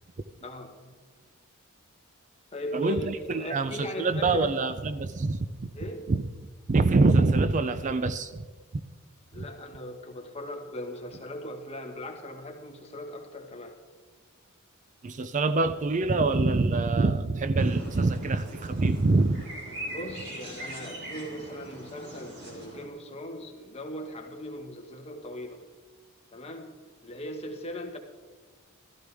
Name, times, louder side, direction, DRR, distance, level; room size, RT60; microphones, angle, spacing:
voice 1, 0.4-0.9 2.5-4.6 5.7-6.1 9.3-13.8 19.9-25.6 26.3-28.0, equal, 30° left, 3 dB, 1.4 m, -39 dB
voice 2, 2.7-5.7 6.1-6.2 6.7-8.4 9.4-9.5 15.0-19.4, right 3 dB, 35° right, 11 dB, 0.4 m, -25 dB
sound 1, 17.6-22.9, right 1 dB, 55° right, 3.4 m, -41 dB
15.0 x 13.5 x 3.5 m, 1.4 s
head